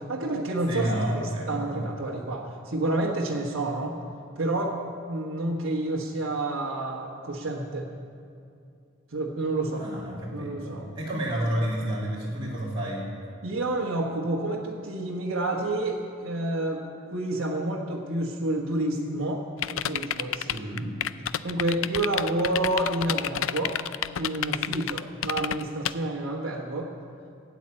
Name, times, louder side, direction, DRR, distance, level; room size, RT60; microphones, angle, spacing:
voice 1, 0.0-0.9 1.2-4.0 4.4-4.8 5.1-7.9 9.1-9.9 10.3-10.8 13.4-19.4 19.7-20.7 21.4-23.8 24.1-26.9, right 2 dB, 75° right, -3 dB, 1.3 m, -29 dB
voice 2, 0.7-1.9 9.7-13.1 20.5-21.0, right 1 dB, 25° right, -7 dB, 2.4 m, -30 dB
sound 1, 19.6-25.9, left 10 dB, 75° left, 0.4 m, -28 dB
13.0 x 8.3 x 8.7 m, 2.5 s
head